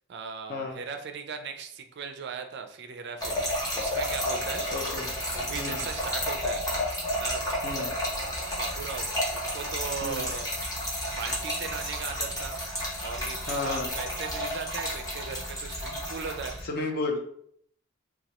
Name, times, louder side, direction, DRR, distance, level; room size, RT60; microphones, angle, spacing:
voice 1, 0.1-5.0 5.3-6.6 7.2-7.4 8.6-10.5 11.1-12.6 13.0-16.6, right 5 dB, 50° right, 6 dB, 0.4 m, -38 dB
Trickle dribble / Fill (with liquid), 3.2-16.6, equal, 15° left, 0.8 m, -31 dB
voice 2, 4.7-5.1 5.6-5.8 7.6-7.9 10.0-10.2 13.5-13.9 16.6-17.2, left 3 dB, 45° left, 2 dB, 0.6 m, -32 dB
4.0 x 2.3 x 2.9 m, 0.67 s
head